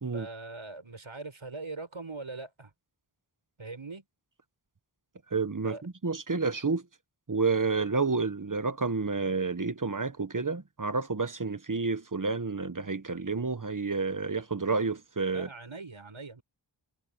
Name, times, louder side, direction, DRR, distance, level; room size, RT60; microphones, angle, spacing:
voice 1, 0.1-2.7 3.6-4.0 5.6-5.8 15.3-16.4, right 3 dB, 80° right, 7.7 m, -41 dB
voice 2, 5.3-6.8 7.3-15.5, right 4 dB, 40° right, 1.2 m, -30 dB
wide cardioid pair, 60°, 48 cm